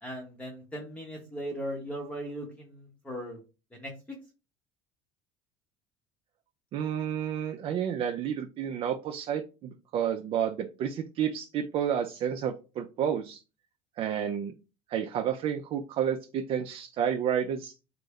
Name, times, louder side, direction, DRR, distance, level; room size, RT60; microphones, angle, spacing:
voice 1, 0.0-3.4 3.7-3.9, equal, 10° left, -1 dB, 0.8 m, -38 dB
voice 2, 6.7-13.4 14.0-14.5 14.9-17.7, right 9 dB, 45° right, 6 dB, 0.3 m, -30 dB
3.3 x 2.0 x 3.5 m, 0.31 s
supercardioid pair, 115°, 13 cm